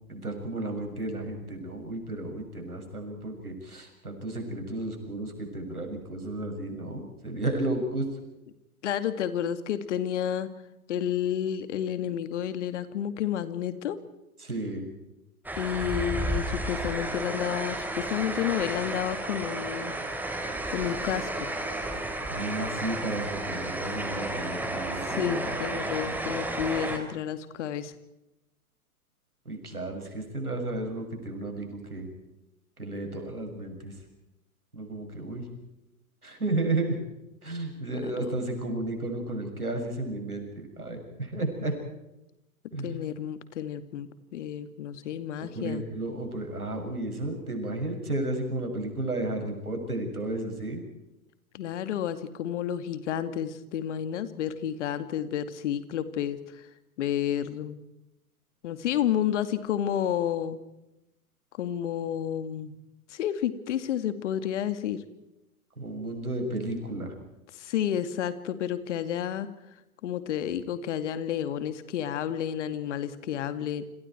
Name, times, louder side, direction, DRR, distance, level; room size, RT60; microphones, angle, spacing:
voice 1, 0.0-8.1 14.4-14.9 22.3-25.8 29.5-32.1 32.8-33.9 34.7-35.5 36.2-37.0 37.4-41.7 42.7-43.0 45.5-50.8 65.8-67.1, right 2 dB, 85° right, 3 dB, 7.0 m, -33 dB
voice 2, 8.8-10.5 10.9-14.0 15.6-19.9 20.7-21.5 25.1-27.9 38.2-38.3 42.8-45.8 51.5-56.4 57.0-57.8 58.6-60.6 61.6-62.8 63.1-65.0 67.6-69.5 70.0-73.8, left 10 dB, 55° left, 11 dB, 2.3 m, -30 dB
sound 1, 15.4-27.0, right 1 dB, 5° right, 3.9 m, -32 dB
29.0 x 26.5 x 4.6 m, 0.93 s
figure-of-eight pair, 105°, 43 cm